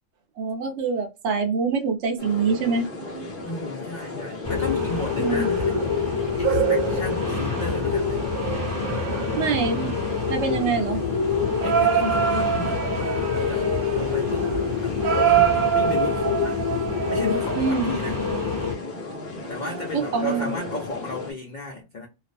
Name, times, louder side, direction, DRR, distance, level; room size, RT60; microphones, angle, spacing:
voice 1, 0.4-2.9 5.2-5.5 9.4-9.9 10.3-11.0 17.6-17.9 19.9-20.5, right 5 dB, 65° right, 0.8 m, -25 dB
sound 1, 2.2-21.3, left 2 dB, 45° left, 0.8 m, -36 dB
sound 2, 3.0-3.5 4.6-10.6 11.6-18.1 19.4-20.8, right 8 dB, 90° right, 0.4 m, -27 dB
voice 2, 3.4-6.0 6.4-8.3 11.6-14.5 14.8-16.6 17.1-18.2 19.5-22.1, left 3 dB, 75° left, 0.4 m, -34 dB
sound 3, 4.4-18.7, left 5 dB, 15° left, 0.8 m, -27 dB
2.5 x 2.0 x 2.5 m
omnidirectional pair, 1.4 m